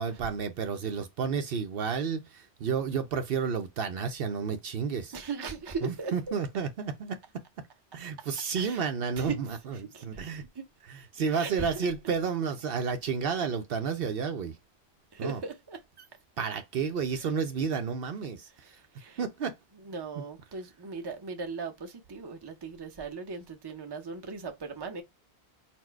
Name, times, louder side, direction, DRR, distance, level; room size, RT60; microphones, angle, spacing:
voice 1, 0.0-5.1 5.8-7.2 7.9-9.5 10.0-10.4 10.9-14.5 15.2-15.4 16.4-18.8 19.2-19.6, right 6 dB, 65° right, 0.8 m, -31 dB
voice 2, 5.1-6.1 8.6-8.8 9.2-9.4 9.7-10.6 11.3-11.9 15.1-16.1 17.1-17.2 18.6-19.2 19.8-25.0, right 4 dB, 25° right, 0.6 m, -38 dB
4.3 x 2.1 x 4.4 m
omnidirectional pair, 1.1 m